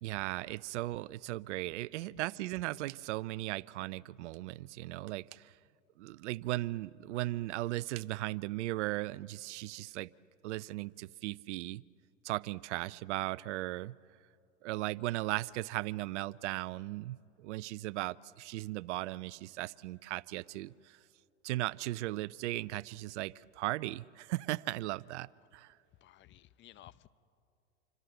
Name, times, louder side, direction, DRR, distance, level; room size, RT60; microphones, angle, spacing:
voice 1, 0.0-5.5 6.0-10.1 10.4-11.8 12.2-13.9 14.6-20.7 21.4-25.7, right 17 dB, 70° right, 0.6 m, -37 dB
voice 2, 26.0-27.1, left 13 dB, 30° left, 0.7 m, -56 dB
27.5 x 25.0 x 7.9 m
hypercardioid pair, 115°, 36 cm